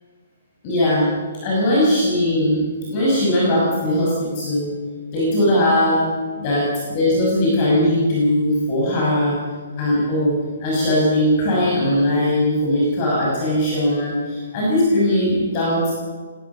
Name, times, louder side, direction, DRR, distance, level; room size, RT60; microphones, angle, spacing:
voice 1, 0.6-1.1 1.4-4.7 5.1-6.1 6.4-9.4 9.8-10.3 10.6-15.9, left 1 dB, 25° left, -5 dB, 6.2 m, -19 dB
19.5 x 19.0 x 6.9 m, 1.5 s
hypercardioid pair, 175°, 0 cm